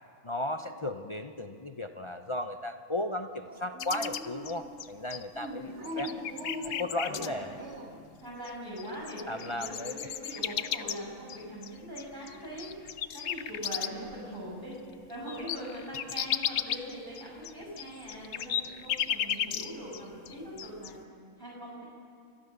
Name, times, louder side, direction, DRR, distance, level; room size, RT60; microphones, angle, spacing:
voice 1, 0.2-6.1 6.6-7.5 9.3-10.1, left 1 dB, 45° left, 6 dB, 0.4 m, -35 dB
Dog, 3.4-4.9 5.7-8.1, equal, 50° right, 1.9 m, -42 dB
sound 1, 3.8-5.4 5.8-7.3 8.4-8.5 8.8-14.1 14.5-14.6 14.9-20.0 20.2-20.9, left 10 dB, 60° left, 0.8 m, -34 dB
voice 2, 5.3-6.2 7.0-7.5 8.2-12.7 13.1-14.8 15.1-21.0 21.4-21.8, equal, 15° right, -5 dB, 5.9 m, -42 dB
30.0 x 13.0 x 6.6 m, 2.4 s
omnidirectional pair, 1.5 m